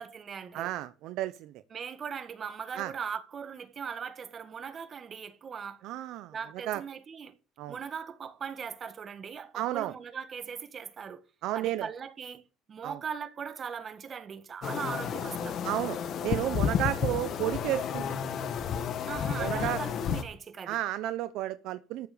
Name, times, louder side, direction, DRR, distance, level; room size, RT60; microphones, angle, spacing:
voice 1, 0.0-0.7 1.7-5.8 6.3-7.4 7.7-11.2 11.5-15.6 19.0-20.8, right 6 dB, 35° right, 1.8 m, -39 dB
voice 2, 0.5-1.5 2.8-2.9 5.8-6.3 6.7-6.8 7.6-7.8 9.5-9.9 11.4-11.9 12.8-13.0 15.6-18.0 19.4-19.8 20.7-22.1, right 14 dB, 65° right, 0.7 m, -32 dB
sound 1, 14.6-20.2, left 7 dB, 50° left, 2.1 m, -31 dB
14.0 x 7.1 x 6.9 m
cardioid pair, 120°, 0 cm